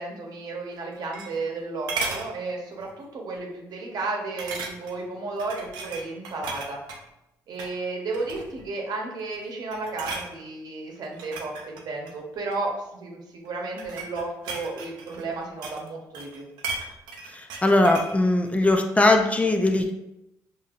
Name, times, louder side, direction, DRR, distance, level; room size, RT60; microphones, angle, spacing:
voice 1, 0.0-6.8 7.5-16.5, right 3 dB, 65° right, 0 dB, 0.9 m, -33 dB
sound 1, 0.7-1.6 1.9-2.3 2.8-3.0 3.3-3.4 4.4-5.0 5.4-7.0 7.5-7.8 8.1-8.7 9.2-9.4 9.7-10.3 11.0-12.6 13.4-15.9 16.1-18.2 18.5-18.6, right 4 dB, 85° right, 0.5 m, -35 dB
voice 2, 17.3-19.9, left 2 dB, 20° left, 4 dB, 0.4 m, -20 dB
5.0 x 2.7 x 2.5 m, 0.91 s
supercardioid pair, 65°, 7 cm